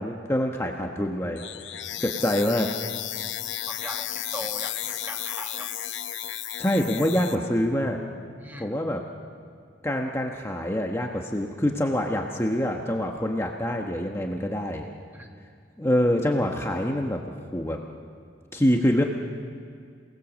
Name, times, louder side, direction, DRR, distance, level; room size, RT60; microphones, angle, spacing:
voice 1, 0.0-2.7 6.3-8.0 8.6-9.0 9.8-14.9 15.8-17.8 18.5-19.0, left 1 dB, 15° left, 1 dB, 1.1 m, -26 dB
sound 1, 1.4-7.4, left 11 dB, 65° left, 0.8 m, -33 dB
voice 2, 3.7-5.7 8.4-8.8 15.1-15.4, right 1 dB, 10° right, 3 dB, 1.5 m, -40 dB
28.0 x 18.5 x 7.4 m, 2.2 s
head